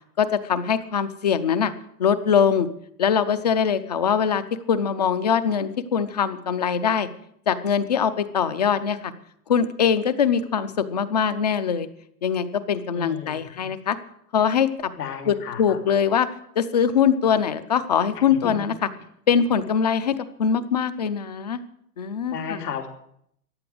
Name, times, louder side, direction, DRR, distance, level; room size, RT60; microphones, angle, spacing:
voice 1, 0.2-1.7 2.0-2.7 3.0-4.4 4.7-7.1 7.5-9.1 9.5-11.9 12.2-14.0 14.3-14.9 15.3-16.3 16.6-18.8 19.3-21.6 22.0-22.6, left 7 dB, 30° left, 14 dB, 0.6 m, -22 dB
voice 2, 12.9-13.7 15.0-15.8 18.1-18.5 22.3-22.9, left 7 dB, 85° left, 3 dB, 3.1 m, -34 dB
14.5 x 10.5 x 7.8 m, 0.71 s
supercardioid pair, 180°, 46 cm